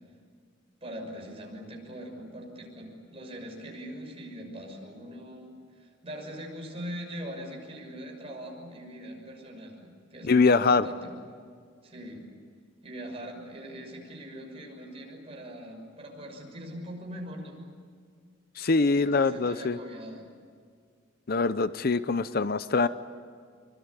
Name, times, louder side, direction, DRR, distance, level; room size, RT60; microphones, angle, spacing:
voice 1, 0.8-11.1 11.8-12.3 12.8-17.7 18.8-20.3, equal, 30° right, 1 dB, 6.4 m, -42 dB
voice 2, 10.2-10.8 18.6-19.8 21.3-22.9, left 4 dB, 50° left, 13 dB, 0.6 m, -23 dB
24.5 x 24.5 x 9.7 m, 2.1 s
head